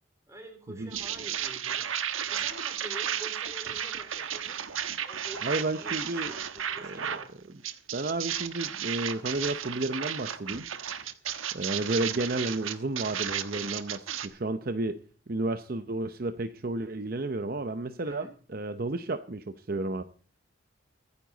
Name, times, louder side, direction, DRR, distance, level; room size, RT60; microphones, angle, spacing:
voice 1, 0.3-1.9 2.3-4.6 5.0-7.4 18.0-18.3, right 1 dB, 15° right, 4 dB, 4.2 m, -47 dB
sound 1, 0.9-7.3 7.6-14.3, right 9 dB, 85° right, 1.2 m, -34 dB
voice 2, 5.4-6.3 6.9-7.0 7.9-10.6 11.5-15.0 15.3-18.3 18.5-20.0, right 2 dB, 45° right, 10 dB, 0.7 m, -32 dB
24.0 x 9.9 x 4.0 m, 0.41 s
head